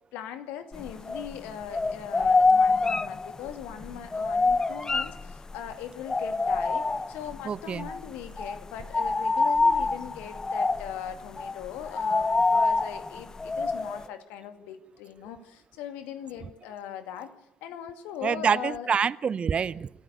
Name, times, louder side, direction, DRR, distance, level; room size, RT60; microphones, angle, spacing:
voice 1, 0.1-17.3 17.6-18.9, left 9 dB, 70° left, 2.3 m, -40 dB
sound 1, 0.7-1.5 1.7-5.7 6.1-7.4 7.8-8.0 8.2-14.0, left 3 dB, 25° left, 0.8 m, -25 dB
voice 2, 7.5-7.9 18.2-19.9, right 6 dB, 40° right, 0.7 m, -26 dB
27.5 x 14.5 x 6.9 m
hypercardioid pair, 50°, 3 cm